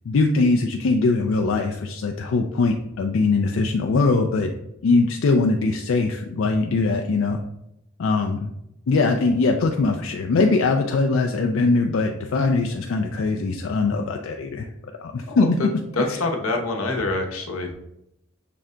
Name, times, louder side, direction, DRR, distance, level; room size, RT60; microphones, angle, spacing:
voice 1, 0.1-4.5 4.8-7.4 8.0-8.5 8.9-14.7 15.0-15.6 16.1-16.2, left 3 dB, 65° left, 3 dB, 0.4 m, -21 dB
voice 2, 15.3-15.7 16.0-17.7, left 2 dB, 90° left, 2 dB, 0.8 m, -26 dB
5.9 x 2.2 x 3.7 m, 0.81 s
head